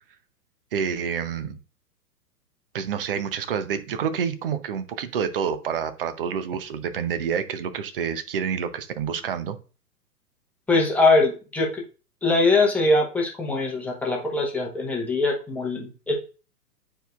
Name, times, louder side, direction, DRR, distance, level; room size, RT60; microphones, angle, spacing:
voice 1, 0.7-1.6 2.7-9.6, right 7 dB, 35° right, 11 dB, 0.6 m, -28 dB
voice 2, 10.7-11.8 12.2-16.1, left 2 dB, 5° left, -2 dB, 0.9 m, -22 dB
9.0 x 4.7 x 2.4 m, 0.35 s
figure-of-eight pair, 115°, 49 cm